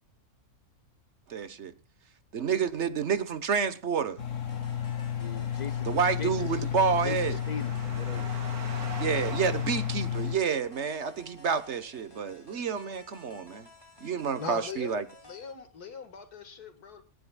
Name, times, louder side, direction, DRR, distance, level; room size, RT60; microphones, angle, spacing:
voice 1, 1.3-1.7 2.3-4.2 5.9-7.4 9.0-13.7 14.0-15.0, right 6 dB, 50° right, 1.3 m, -29 dB
Engine, 4.2-10.4, left 9 dB, 55° left, 1.8 m, -32 dB
sound 1, 4.5-15.5, equal, 15° left, 2.4 m, -55 dB
sound 2, 4.7-11.0, right 4 dB, 75° right, 2.6 m, -44 dB
voice 2, 5.1-5.9 6.2-8.4, left 5 dB, 40° left, 0.6 m, -41 dB
voice 3, 14.4-15.0 15.2-17.0, left 5 dB, 85° left, 2.3 m, -41 dB
26.5 x 9.7 x 2.3 m
omnidirectional pair, 1.6 m